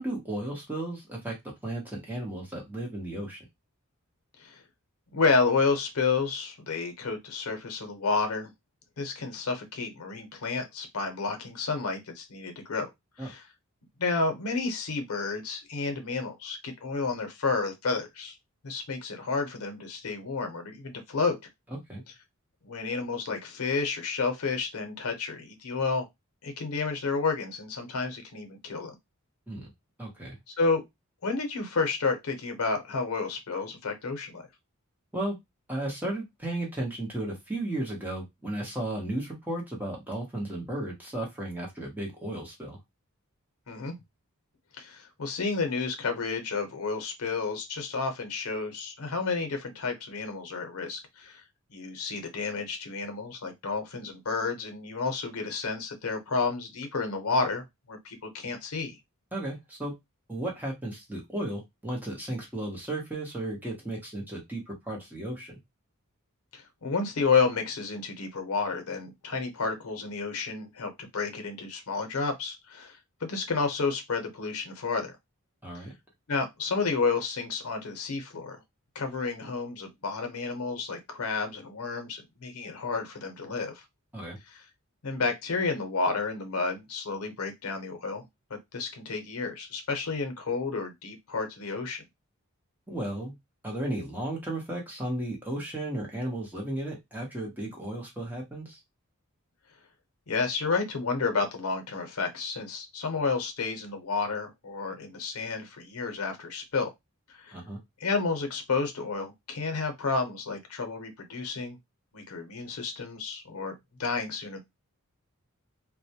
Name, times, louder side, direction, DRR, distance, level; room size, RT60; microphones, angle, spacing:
voice 1, 0.0-1.3 1.6-3.4 13.2-13.3 21.9-22.0 29.5-29.7 30.0-30.4 35.1-35.3 35.7-42.8 59.3-59.9 60.3-65.6 75.6-75.9 84.1-84.4 92.9-93.3 93.6-98.8 107.5-107.8, right 1 dB, 10° right, 0.8 m, -34 dB
voice 2, 5.1-8.5 9.0-12.9 13.2-13.4 14.0-18.4 18.6-21.4 22.6-26.1 26.4-29.0 30.5-30.8 31.2-34.4 43.7-44.0 44.8-51.4 51.7-59.0 66.5-75.1 75.7-75.9 76.3-78.6 78.9-83.8 84.5-84.6 85.0-88.2 88.5-92.0 100.3-106.9 107.4-107.6 108.0-111.8 112.1-114.6, left 4 dB, 90° left, 0.7 m, -31 dB
2.1 x 2.1 x 2.7 m
head